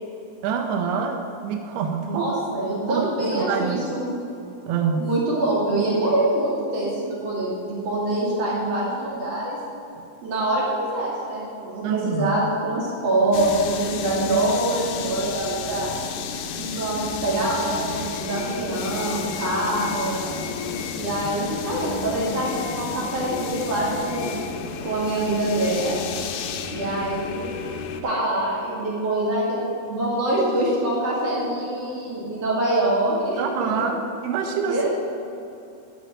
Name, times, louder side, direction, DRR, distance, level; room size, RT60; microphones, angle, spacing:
voice 1, 0.4-2.3 2.9-3.9 4.7-5.1 11.8-12.4 33.4-34.9, right 6 dB, 90° right, 3 dB, 2.6 m, -26 dB
voice 2, 2.0-4.1 5.0-6.9 7.2-9.6 10.2-15.9 16.6-20.4 20.9-24.3 24.8-26.0 26.7-27.6 28.0-33.8 34.6-34.9, right 1 dB, 55° right, -6 dB, 3.4 m, -25 dB
sound 1, 13.3-28.0, left 6 dB, 85° left, 1.8 m, -32 dB
10.0 x 5.8 x 7.3 m, 2.7 s
omnidirectional pair, 4.5 m